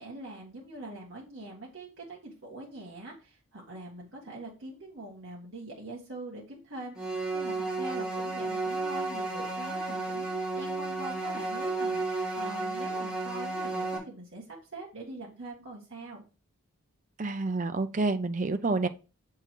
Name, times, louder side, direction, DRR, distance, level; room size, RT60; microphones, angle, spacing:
voice 1, 0.0-16.2, right 2 dB, 60° right, 1.7 m, -43 dB
sound 1, 7.0-14.0, right 2 dB, 5° right, 2.3 m, -32 dB
voice 2, 17.2-18.9, right 3 dB, 35° right, 0.4 m, -28 dB
7.0 x 3.7 x 4.5 m
head